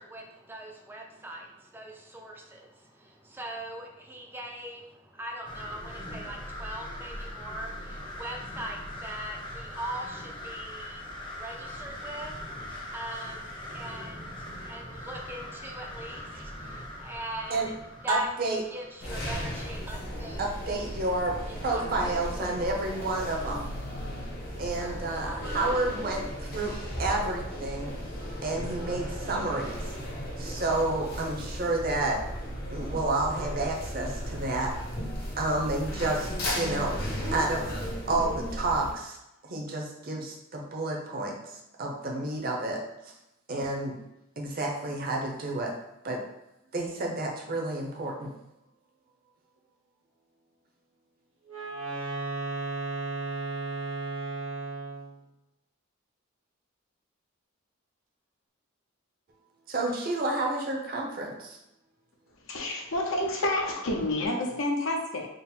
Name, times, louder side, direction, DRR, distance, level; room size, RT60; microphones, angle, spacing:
voice 1, 0.0-17.7 18.0-18.3 18.7-20.4 21.5-22.6 24.6-25.7, right 1 dB, 10° right, 1 dB, 0.4 m, -41 dB
sound 1, 5.5-19.1, left 1 dB, 25° left, 0.7 m, -41 dB
voice 2, 18.1-18.6 20.4-21.3 21.6-23.6 24.6-26.7 27.0-28.0 28.4-29.8 30.4-32.2 32.7-34.7 35.4-36.3 36.5-37.0 37.3-37.7 38.1-39.2 39.5-43.1 43.5-44.0 44.4-45.7 46.0-46.2 46.7-48.3 59.7-61.6, right 2 dB, 45° right, 0 dB, 0.7 m, -30 dB
sound 2, 19.0-38.9, equal, 50° left, 0.9 m, -35 dB
Wind instrument woodwind instrument, 51.5-55.2, right 3 dB, 75° right, 1.0 m, -34 dB
voice 3, 62.5-65.3, left 1 dB, 75° left, 1 dB, 0.7 m, -29 dB
3.8 x 2.0 x 4.2 m, 0.91 s
head